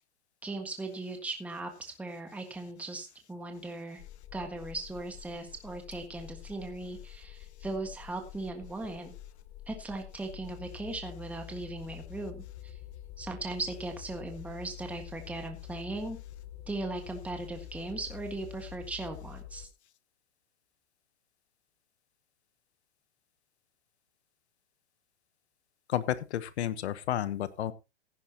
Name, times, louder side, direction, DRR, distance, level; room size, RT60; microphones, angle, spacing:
voice 1, 0.4-4.0 4.3-9.1 9.7-12.7 13.2-16.2 16.7-19.7, right 2 dB, 5° right, 4 dB, 1.6 m, -38 dB
sound 1, 4.0-19.7, left 13 dB, 35° left, 1.1 m, -47 dB
voice 2, 25.9-27.7, left 11 dB, 70° left, 15 dB, 1.1 m, -31 dB
16.0 x 10.0 x 2.9 m, 0.26 s
hypercardioid pair, 150°, 34 cm